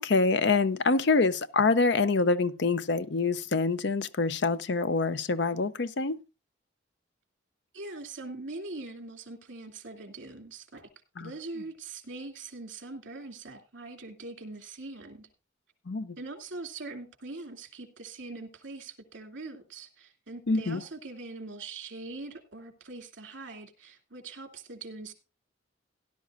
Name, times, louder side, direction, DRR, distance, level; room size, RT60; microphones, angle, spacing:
voice 1, 0.0-6.2 11.2-11.3 15.9-16.2 20.5-20.8, left 3 dB, 60° left, 0.6 m, -26 dB
voice 2, 7.7-10.9 11.2-15.3 16.2-25.1, right 3 dB, 65° right, 2.7 m, -42 dB
17.0 x 11.5 x 2.5 m
head